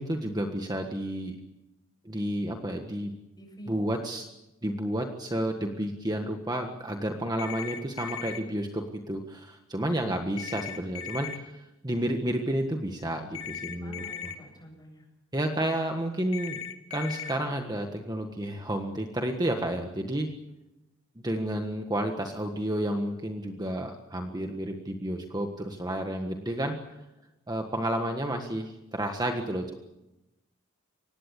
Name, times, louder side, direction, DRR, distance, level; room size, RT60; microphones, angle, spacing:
voice 1, 0.0-1.3 2.0-3.1 3.7-4.3 4.6-14.3 15.3-16.6 16.9-20.3 21.1-26.8 27.5-29.8, right 1 dB, 20° right, 4 dB, 1.6 m, -31 dB
voice 2, 3.4-3.8 13.7-15.1, equal, 20° left, 3 dB, 7.6 m, -48 dB
sound 1, 7.4-8.4 10.4-11.4 13.3-14.3 16.3-17.3, left 8 dB, 80° left, 2.0 m, -37 dB
24.5 x 19.5 x 8.5 m, 0.95 s
head